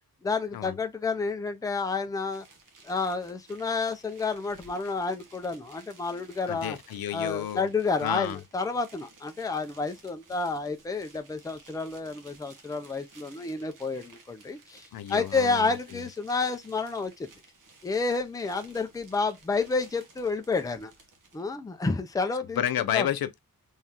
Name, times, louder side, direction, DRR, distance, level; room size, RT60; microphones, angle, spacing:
voice 1, 0.2-2.4 2.8-6.8 7.1-17.3 17.8-20.9 21.3-22.6 22.9-23.1, left 4 dB, 10° left, 0.4 m, -30 dB
sound 1, 2.3-21.4, right 3 dB, 60° right, 1.1 m, -56 dB
voice 2, 6.5-7.7 8.0-8.4 14.9-16.0 22.6-23.4, left 11 dB, 80° left, 0.5 m, -31 dB
3.6 x 3.1 x 2.8 m
wide cardioid pair, 145°, 35 cm